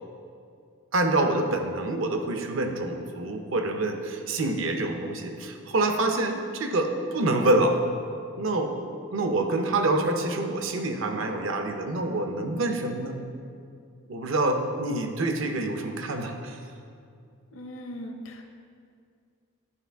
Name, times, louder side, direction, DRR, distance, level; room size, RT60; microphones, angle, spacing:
voice 1, 0.9-7.8 8.4-8.7 9.1-13.2 14.1-16.6 17.8-17.9, right 2 dB, 65° right, 5 dB, 0.6 m, -26 dB
voice 2, 17.5-18.4, equal, 65° left, 4 dB, 0.7 m, -39 dB
9.9 x 4.8 x 3.4 m, 2.3 s
head